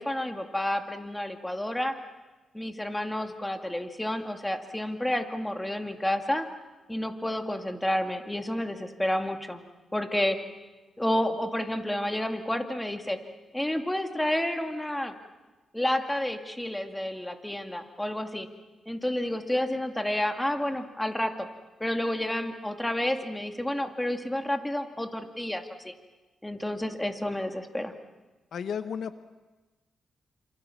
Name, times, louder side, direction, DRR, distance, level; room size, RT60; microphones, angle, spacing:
voice 1, 0.0-1.9 2.5-6.5 6.9-9.6 9.9-10.4 11.0-13.2 13.5-15.1 15.7-18.5 18.9-21.5 21.8-25.9 26.4-27.9, left 1 dB, 10° left, 5 dB, 2.3 m, -30 dB
voice 2, 28.5-29.2, left 7 dB, 70° left, 10 dB, 1.1 m, -33 dB
28.0 x 27.0 x 7.2 m, 1.2 s
cardioid pair, 100°, 0 cm